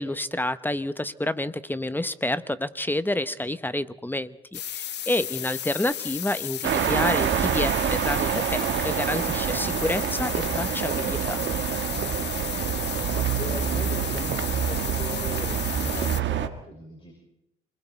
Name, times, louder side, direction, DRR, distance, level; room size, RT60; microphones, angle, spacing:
voice 1, 0.0-11.4, left 1 dB, 10° left, 14 dB, 1.0 m, -29 dB
sound 1, 4.5-16.2, left 10 dB, 60° left, 0.8 m, -34 dB
sound 2, 6.6-16.5, right 9 dB, 65° right, 1.5 m, -27 dB
voice 2, 12.2-12.8 13.1-17.1, left 2 dB, 25° left, 1 dB, 5.8 m, -40 dB
28.0 x 21.5 x 4.5 m, 0.80 s
cardioid pair, 90°, 20 cm